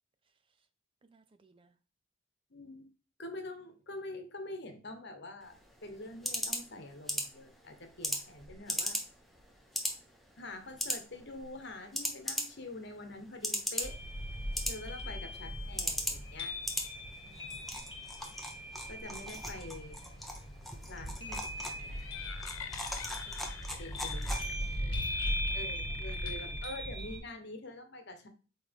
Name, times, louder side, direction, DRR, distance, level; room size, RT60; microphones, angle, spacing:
voice 1, 1.0-1.8 17.2-17.6 23.2-23.7 24.0-25.2 25.4-25.6 26.3-26.6, right 3 dB, 25° right, 10 dB, 0.4 m, -62 dB
voice 2, 2.5-2.9 3.2-9.0 10.4-14.0 14.7-16.6 18.9-20.0 20.9-22.0 23.8-24.2 25.5-28.3, left 2 dB, 50° left, 6 dB, 1.1 m, -45 dB
sound 1, 5.4-24.8, equal, ahead, 0.7 m, -40 dB
sound 2, 13.8-27.2, equal, 25° left, 1.6 m, -39 dB
sound 3, 21.7-26.8, left 8 dB, 80° left, 0.5 m, -49 dB
8.4 x 3.2 x 3.5 m, 0.36 s
head